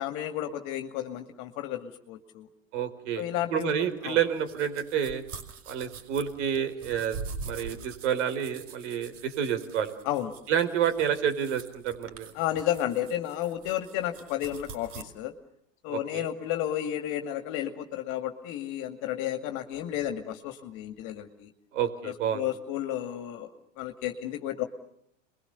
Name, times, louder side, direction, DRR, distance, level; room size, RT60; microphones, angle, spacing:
voice 1, 0.0-2.5 3.2-4.2 10.0-10.3 12.3-15.3 15.8-21.5 22.0-23.5 23.8-24.7, left 12 dB, 50° left, 6 dB, 2.2 m, -32 dB
voice 2, 2.7-3.2 3.5-5.2 5.7-7.2 7.5-9.9 10.5-12.3 15.9-16.3 21.7-22.5, right 9 dB, 65° right, 9 dB, 4.9 m, -29 dB
sound 1, 3.6-15.0, right 4 dB, 40° right, 5.4 m, -44 dB
28.0 x 22.5 x 7.0 m, 0.74 s
hypercardioid pair, 105°, 38 cm